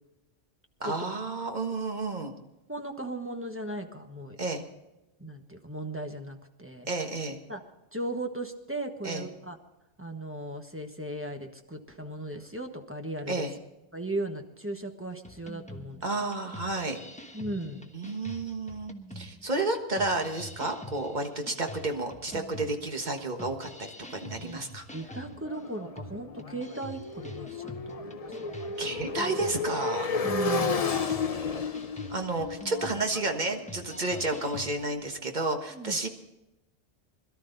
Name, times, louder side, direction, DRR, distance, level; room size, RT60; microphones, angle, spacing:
voice 1, 0.8-2.3 4.4-4.6 6.9-7.4 9.0-9.3 13.3-13.5 16.0-17.0 17.9-24.8 28.8-30.1 32.1-36.1, right 2 dB, 40° right, 4 dB, 1.6 m, -31 dB
voice 2, 2.7-4.4 5.2-6.9 7.5-7.6 7.9-9.6 10.0-13.5 13.9-16.0 17.3-17.9 24.4-24.6 24.9-28.8 30.2-31.1 35.7-36.0, right 1 dB, 10° right, 4 dB, 1.2 m, -37 dB
sound 1, 15.2-34.8, equal, 5° left, 1.0 m, -46 dB
Motorcycle, 25.1-34.9, left 4 dB, 35° left, 0.7 m, -33 dB
22.0 x 12.5 x 4.0 m, 0.98 s
omnidirectional pair, 1.3 m